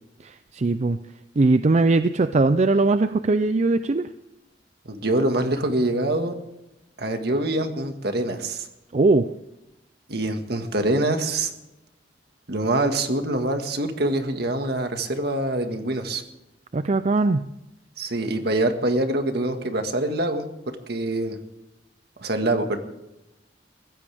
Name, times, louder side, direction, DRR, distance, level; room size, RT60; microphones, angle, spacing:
voice 1, 0.2-1.0 1.4-4.1 8.9-9.3 16.7-17.5, right 3 dB, 40° right, 11 dB, 0.5 m, -20 dB
voice 2, 4.9-6.3 7.0-8.7 10.1-11.5 12.5-16.2 18.0-20.5 20.9-21.4 22.2-22.8, right 1 dB, 60° right, 6 dB, 1.8 m, -24 dB
22.5 x 16.0 x 3.5 m, 0.94 s
head